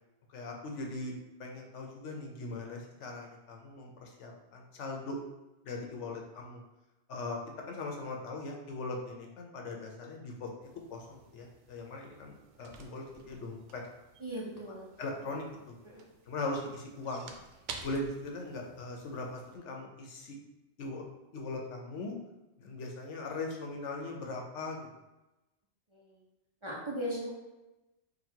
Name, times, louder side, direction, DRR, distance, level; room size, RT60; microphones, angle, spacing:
voice 1, 0.3-1.1 1.4-5.2 5.6-6.6 7.1-7.4 7.7-13.8 15.0-15.7 16.3-17.3 17.8-20.4 20.8-21.0 21.3-22.1 22.6-24.8, left 2 dB, 90° left, 1 dB, 1.1 m, -40 dB
voice 2, 5.8-6.1 14.2-14.9 15.8-16.1 25.9-26.2 26.6-27.3, equal, 35° right, -4 dB, 0.5 m, -39 dB
sound 1, 10.6-19.6, right 5 dB, 85° right, 0.9 m, -52 dB
4.0 x 2.3 x 4.4 m, 1.0 s
omnidirectional pair, 1.2 m